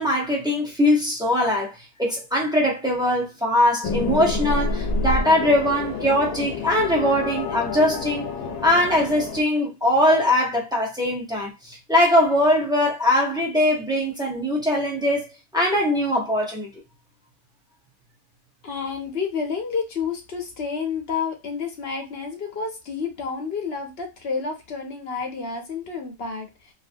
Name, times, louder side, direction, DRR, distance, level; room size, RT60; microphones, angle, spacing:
voice 1, 0.0-1.7 2.0-8.3 8.6-15.3 15.5-16.7, left 1 dB, 5° right, 0.7 m, -21 dB
sound 1, 3.8-9.4, left 3 dB, 85° left, 1.1 m, -28 dB
voice 2, 18.6-26.7, left 5 dB, 55° left, 0.8 m, -30 dB
2.8 x 2.5 x 2.6 m
omnidirectional pair, 1.5 m